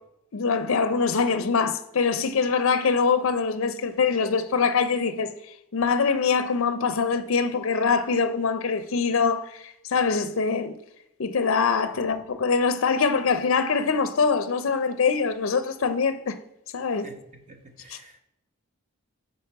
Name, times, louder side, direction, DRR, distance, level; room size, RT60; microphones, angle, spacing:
voice 1, 0.3-5.3 5.7-10.8 11.2-16.4 16.7-17.1 17.9-18.0, left 5 dB, 65° left, 0.5 m, -24 dB
voice 2, 11.9-12.4 17.0-17.2 17.5-18.2, right 2 dB, 30° right, 0.9 m, -48 dB
9.3 x 4.2 x 4.6 m
head